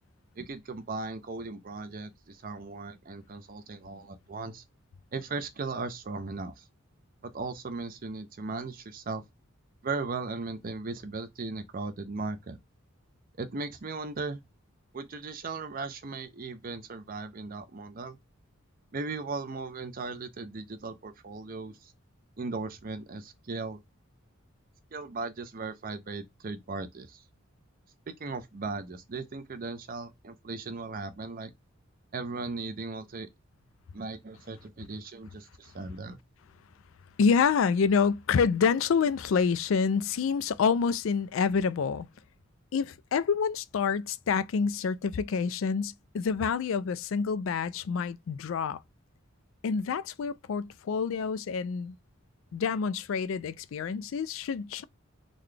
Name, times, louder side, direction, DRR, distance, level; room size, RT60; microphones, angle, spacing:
voice 1, 0.4-4.6 5.1-6.6 7.2-9.2 9.8-12.6 13.4-14.4 14.9-18.2 18.9-21.9 22.4-23.8 24.9-27.2 28.2-31.5 32.1-33.3 33.9-36.2, right 3 dB, 40° right, 0.5 m, -37 dB
voice 2, 37.2-42.1 42.7-48.8 49.6-51.9 52.5-54.8, left 6 dB, 65° left, 0.3 m, -27 dB
3.9 x 2.2 x 3.2 m
head